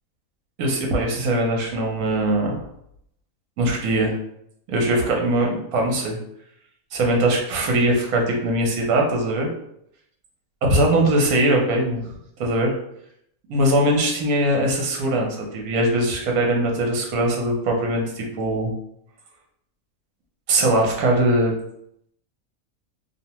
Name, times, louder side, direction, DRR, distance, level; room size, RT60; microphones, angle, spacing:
voice 1, 0.6-2.6 3.6-4.2 4.7-6.2 6.9-9.5 10.6-12.1 12.4-12.7 13.5-18.7 20.5-21.5, right 1 dB, 75° right, 0 dB, 1.1 m, -21 dB
2.7 x 2.1 x 2.8 m, 0.74 s
omnidirectional pair, 1.6 m